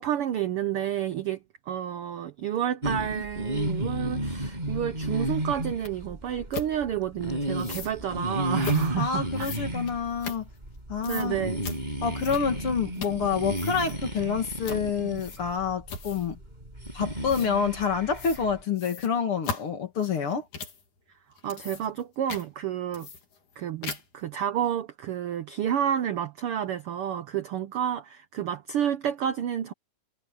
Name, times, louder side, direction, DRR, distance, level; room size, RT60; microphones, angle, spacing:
voice 1, 0.0-9.5 11.1-11.7 21.4-23.1 23.6-29.7, right 10 dB, 75° right, 1.3 m, -30 dB
sound 1, 2.8-18.6, right 1 dB, 15° right, 6.5 m, -33 dB
sound 2, 5.8-5.9 6.5-6.7 7.6-7.9 8.6-8.9 9.4-10.8 11.0-11.3 11.6-11.8 12.2-12.6 12.9-13.3 13.5-14.0 14.6-14.8 15.2-15.6 15.9-16.3 17.3-17.5 18.1-18.4 18.8-20.8 21.3-22.0 22.3-22.5 22.9-23.5 23.8-24.2, left 5 dB, 75° left, 4.9 m, -38 dB
voice 2, 9.0-10.5 10.9-11.3 12.0-16.4 16.9-20.5, left 6 dB, 50° left, 2.6 m, -28 dB
omnidirectional pair, 3.5 m